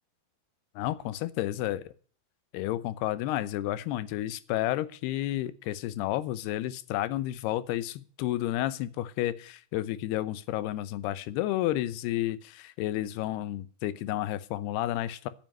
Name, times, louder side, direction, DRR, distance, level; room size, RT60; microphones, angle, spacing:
voice 1, 0.8-1.8 2.5-15.3, left 14 dB, 85° left, 16 dB, 2.8 m, -31 dB
12.5 x 7.5 x 9.0 m, 0.43 s
omnidirectional pair, 4.5 m